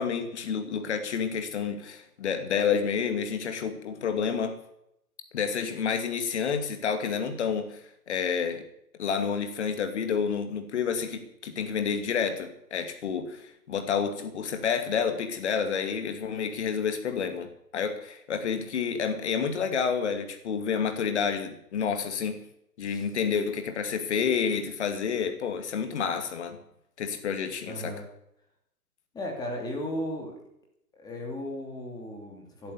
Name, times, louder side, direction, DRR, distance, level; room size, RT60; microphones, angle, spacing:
voice 1, 0.0-4.6 5.3-7.8 8.1-8.6 9.0-22.4 22.8-26.6 27.0-27.9, left 6 dB, 45° left, 7 dB, 2.4 m, -29 dB
voice 2, 27.7-28.0 29.1-30.4 31.0-32.7, left 1 dB, 10° left, 0 dB, 2.7 m, -35 dB
12.5 x 11.5 x 8.4 m, 0.76 s
hypercardioid pair, 145°, 48 cm